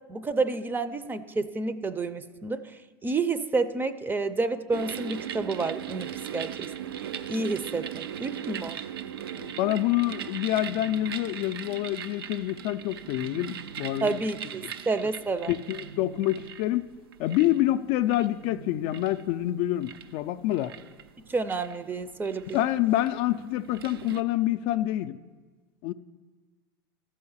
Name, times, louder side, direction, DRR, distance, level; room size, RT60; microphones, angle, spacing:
voice 1, 0.1-6.7 7.3-8.8 14.0-15.5 21.3-22.7, right 3 dB, 15° right, 0.5 m, -30 dB
sound 1, 4.7-24.2, right 9 dB, 85° right, 0.4 m, -40 dB
voice 2, 9.3-14.2 15.5-16.9 17.2-20.7 22.5-25.2 25.8-25.9, left 14 dB, 55° left, 0.4 m, -27 dB
sound 2, 10.4-11.7 12.9-14.2 15.5-16.9 18.2-19.5, right 5 dB, 65° right, 1.1 m, -48 dB
12.5 x 4.8 x 7.1 m
hypercardioid pair, 100°, 12 cm